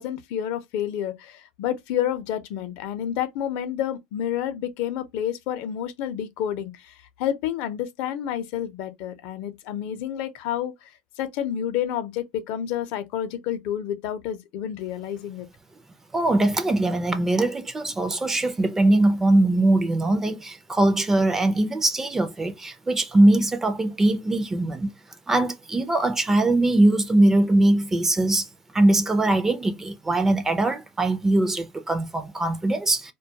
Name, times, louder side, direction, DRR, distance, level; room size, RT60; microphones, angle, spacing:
voice 1, 0.0-10.9 11.2-15.5, left 10 dB, 65° left, 0.5 m, -29 dB
voice 2, 16.1-24.9 25.3-28.5 28.7-33.1, right 2 dB, 15° right, 0.4 m, -21 dB
2.2 x 2.2 x 2.7 m
supercardioid pair, 140°, 3 cm